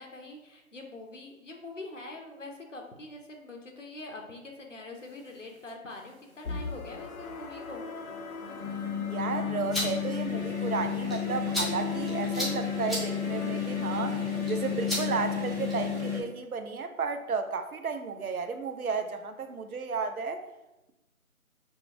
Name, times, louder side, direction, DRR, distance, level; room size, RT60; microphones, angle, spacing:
voice 1, 0.0-7.8, left 2 dB, 60° left, 2 dB, 0.9 m, -44 dB
sound 1, 5.3-5.4 6.4-16.2, left 7 dB, 50° right, 1.0 m, -33 dB
sound 2, 6.4-15.4, left 4 dB, 85° left, 0.6 m, -42 dB
voice 2, 9.1-14.2 14.5-20.4, right 5 dB, 85° right, 7 dB, 0.7 m, -33 dB
sound 3, 9.5-16.0, equal, ahead, 0.6 m, -38 dB
4.5 x 2.4 x 4.4 m, 0.98 s
figure-of-eight pair, 180°, 42 cm